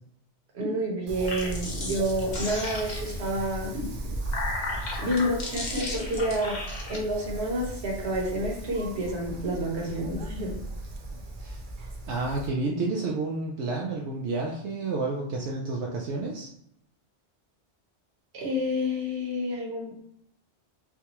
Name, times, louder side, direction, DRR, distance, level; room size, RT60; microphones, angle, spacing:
voice 1, 0.5-3.9 5.0-6.6 6.9-10.5 18.3-20.0, equal, 70° right, -2 dB, 1.3 m, -29 dB
sound 1, 1.1-3.3 4.0-7.0, left 2 dB, 45° left, 0.8 m, -35 dB
Wind, 1.1-12.5, right 2 dB, 55° right, 0.7 m, -37 dB
voice 2, 12.1-16.5, right 3 dB, 90° right, -1 dB, 0.9 m, -30 dB
4.8 x 2.3 x 2.9 m, 0.73 s
omnidirectional pair, 1.1 m